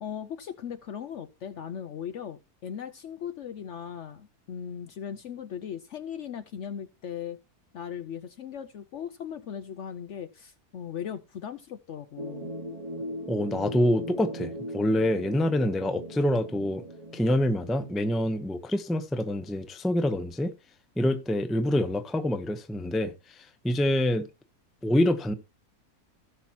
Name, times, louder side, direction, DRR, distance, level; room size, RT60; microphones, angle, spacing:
voice 1, 0.0-7.4 7.7-12.5, left 8 dB, 60° left, 0.8 m, -38 dB
sound 1, 12.2-18.4, equal, 25° right, 1.1 m, -39 dB
voice 2, 13.3-16.8 17.1-20.5 21.0-24.3 24.8-25.3, left 1 dB, ahead, 0.5 m, -26 dB
17.0 x 5.8 x 2.9 m
omnidirectional pair, 1.6 m